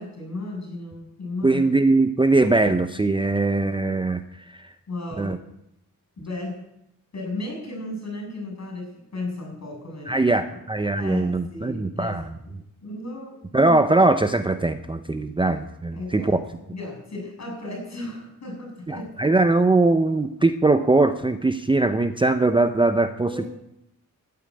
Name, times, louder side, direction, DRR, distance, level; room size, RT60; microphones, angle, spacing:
voice 1, 0.0-1.7 4.9-5.4 6.2-6.6 7.1-10.4 10.9-12.5 12.8-14.0 15.9-16.4 16.7-19.3 23.2-23.5, left 2 dB, 50° left, 3 dB, 7.3 m, -35 dB
voice 2, 1.4-4.2 4.5-4.7 5.2-5.4 10.1-12.4 13.5-16.4 18.9-23.4, right 2 dB, 15° right, 9 dB, 0.6 m, -21 dB
12.5 x 9.6 x 9.8 m, 0.82 s
wide cardioid pair, 175°, 34 cm